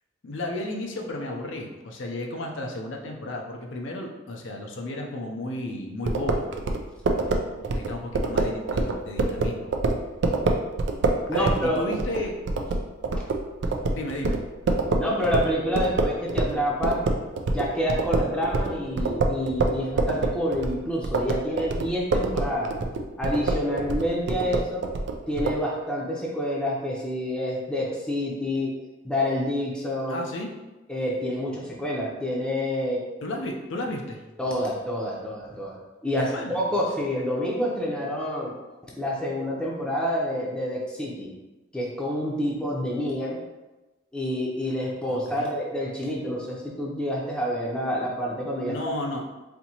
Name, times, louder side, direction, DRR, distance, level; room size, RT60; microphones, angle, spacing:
voice 1, 0.2-6.5 7.1-9.7 11.3-12.3 13.9-14.4 30.1-30.5 33.2-34.2 36.2-36.6 45.3-45.5 48.7-49.3, left 1 dB, 75° left, 1 dB, 0.5 m, -33 dB
sound 1, 6.1-16.6 16.8-25.6, right 2 dB, 65° right, 0.4 m, -26 dB
voice 2, 11.3-11.8 13.2-13.3 15.0-17.0 17.5-22.7 23.2-24.8 25.3-28.7 29.0-30.2 30.9-33.0 34.4-35.8 36.0-38.5 38.9-41.3 41.7-43.4 44.1-48.7, equal, 5° left, -4 dB, 0.7 m, -28 dB
4.2 x 2.8 x 2.8 m, 1.1 s
head